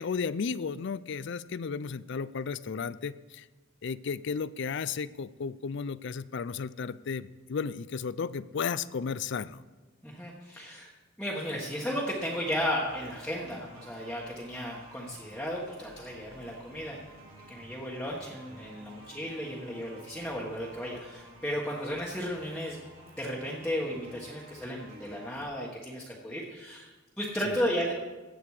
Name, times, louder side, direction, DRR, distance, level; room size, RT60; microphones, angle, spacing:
voice 1, 0.0-3.5 3.8-9.6 27.5-27.6, left 5 dB, 60° left, 17 dB, 0.4 m, -34 dB
voice 2, 10.0-10.9 11.2-17.0 17.5-22.8 23.2-26.9 27.2-27.9, equal, 5° left, -4 dB, 1.4 m, -34 dB
sound 1, 11.7-25.4, right 1 dB, 85° right, 3.6 m, -52 dB
15.5 x 8.8 x 4.9 m, 1.2 s
head